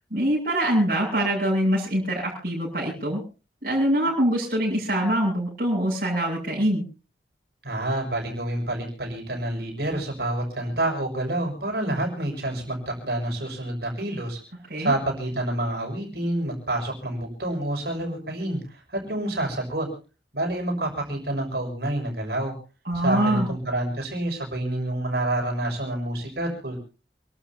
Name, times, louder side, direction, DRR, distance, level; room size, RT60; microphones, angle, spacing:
voice 1, 0.1-3.2 3.6-6.8 14.7-14.9 22.8-23.5, right 1 dB, 50° right, -6 dB, 7.8 m, -24 dB
voice 2, 7.6-14.4 14.8-19.9 20.3-22.5 23.0-26.8, right 1 dB, 65° right, 1 dB, 6.7 m, -28 dB
29.0 x 13.0 x 2.8 m, 0.35 s
head